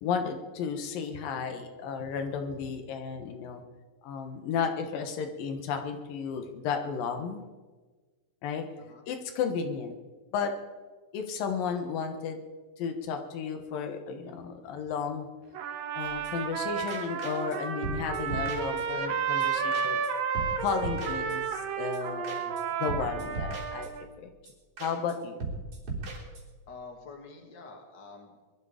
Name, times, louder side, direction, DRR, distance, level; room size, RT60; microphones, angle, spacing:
voice 1, 0.0-3.6 4.0-7.4 8.4-8.7 9.1-9.9 10.3-10.5 11.1-12.5 12.8-15.3 15.9-20.0 20.6-22.5 22.8-23.9 24.2-24.3 24.8-25.4, left 6 dB, 85° left, 6 dB, 3.0 m, -33 dB
Trumpet, 15.5-24.0, right 7 dB, 80° right, 3.0 m, -32 dB
sound 1, 16.0-16.6 16.9-17.6 17.8-19.1 19.4-19.5 19.7-20.1 20.3-21.7 21.9-22.0 22.2-22.6 22.9-24.2 24.5-24.6 24.8-25.1 25.4-26.6, right 3 dB, 45° right, 4.5 m, -38 dB
voice 2, 26.7-28.5, left 4 dB, 35° left, 2 dB, 2.7 m, -47 dB
21.5 x 13.0 x 5.0 m, 1.3 s
omnidirectional pair, 3.9 m